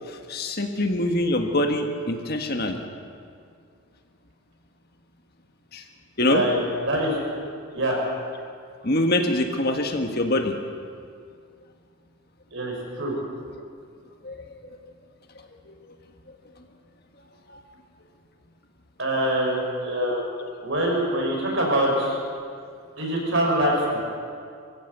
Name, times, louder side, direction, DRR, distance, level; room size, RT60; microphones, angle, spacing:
voice 1, 0.1-2.8 5.7-5.8 6.2-6.4 8.8-10.5 14.2-14.4 14.6-14.8 15.7-15.8 17.5-17.6 20.0-20.1, left 1 dB, 45° left, 4 dB, 1.6 m, -24 dB
voice 2, 6.3-7.1 7.7-8.0 12.5-13.1 19.0-20.2 20.6-22.2 23.0-24.0, right 1 dB, 55° right, -1 dB, 6.1 m, -24 dB
24.0 x 15.0 x 8.2 m, 2.2 s
head